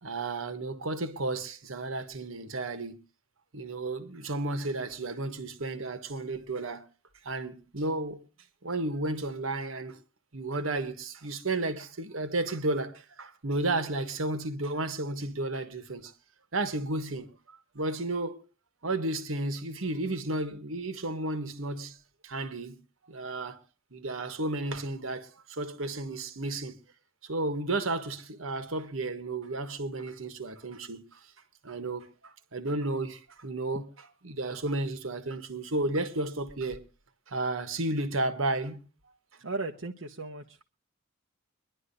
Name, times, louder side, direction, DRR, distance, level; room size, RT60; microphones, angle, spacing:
voice 1, 0.0-3.0 3.5-6.9 7.2-8.3 8.6-10.0 10.3-16.1 16.5-18.4 18.8-22.0 22.2-23.6 23.9-26.8 27.2-31.2 31.6-36.8 37.3-38.9, right 2 dB, 85° right, 1.4 m, -33 dB
voice 2, 39.4-40.6, right 3 dB, 70° right, 1.0 m, -36 dB
24.5 x 11.0 x 2.7 m
head